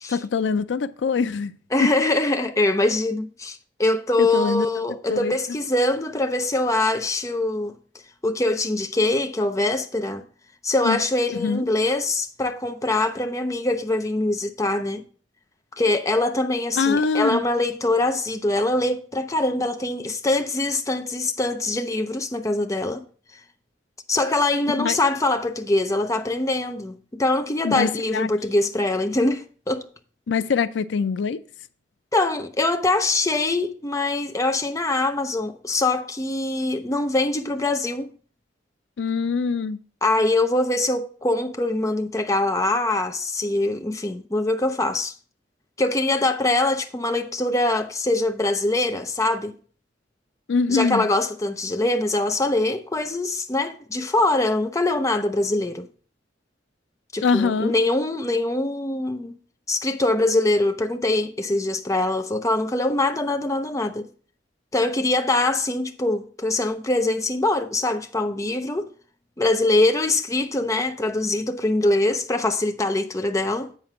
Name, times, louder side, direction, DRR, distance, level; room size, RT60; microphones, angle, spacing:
voice 1, 0.1-1.5 1.8-1.9 4.2-4.7 5.1-5.4 10.8-11.0 11.3-11.6 16.8-17.4 24.7-25.0 27.6-28.3 30.3-31.4 39.0-39.8 50.5-51.1 57.2-57.7, left 5 dB, 85° left, 0.4 m, -23 dB
voice 2, 1.7-7.7 8.2-10.2 10.6-15.0 15.8-23.0 24.1-29.9 32.1-38.1 40.0-45.2 45.8-49.5 50.7-55.9 57.1-59.3 59.7-64.1 64.7-68.9 69.4-73.7, left 2 dB, 20° left, 0.6 m, -23 dB
8.9 x 4.3 x 4.9 m
head